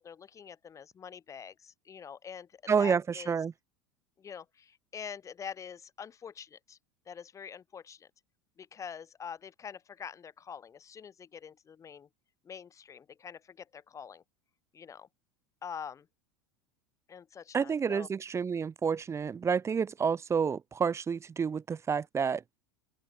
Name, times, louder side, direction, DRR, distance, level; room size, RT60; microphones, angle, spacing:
voice 1, 0.0-3.4 4.2-6.8 7.1-8.1 8.6-12.1 12.4-14.2 14.7-15.1 15.6-16.1 17.1-18.1, left 7 dB, 30° left, 7.3 m, -45 dB
voice 2, 2.7-3.5 17.5-22.4, right 6 dB, 25° right, 6.2 m, -29 dB
open air
figure-of-eight pair, 80°, 11 cm